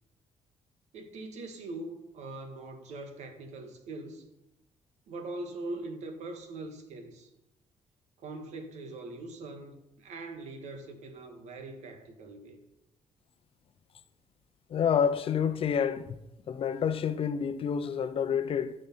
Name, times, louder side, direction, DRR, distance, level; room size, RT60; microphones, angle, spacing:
voice 1, 0.9-4.3 5.1-7.3 8.2-12.6, right 2 dB, 80° right, 1.7 m, -42 dB
voice 2, 14.7-16.2 16.5-18.7, left 7 dB, 50° left, 0.7 m, -28 dB
13.5 x 5.4 x 5.7 m
cardioid pair, 110°, 12 cm